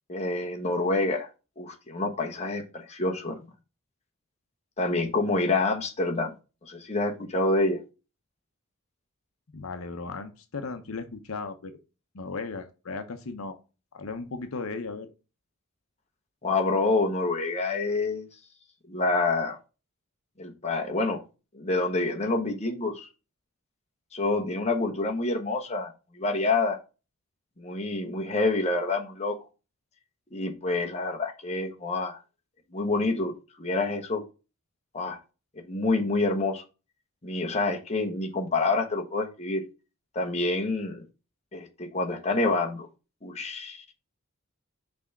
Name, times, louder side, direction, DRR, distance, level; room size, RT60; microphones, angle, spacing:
voice 1, 0.1-1.3 1.6-3.3 4.8-6.3 6.6-7.8 16.4-18.3 18.9-19.6 20.4-21.2 21.5-23.1 24.1-26.8 27.6-29.4 30.3-32.2 32.7-33.3 33.6-34.2 34.9-35.2 35.6-36.6 37.2-39.6 40.1-41.0 41.5-42.9 43.2-43.8, left 2 dB, 30° left, 2 dB, 1.2 m, -27 dB
voice 2, 9.5-11.8 12.1-13.6 13.9-15.1, left 4 dB, 75° left, 8 dB, 0.8 m, -36 dB
6.1 x 3.4 x 5.8 m, 0.30 s
head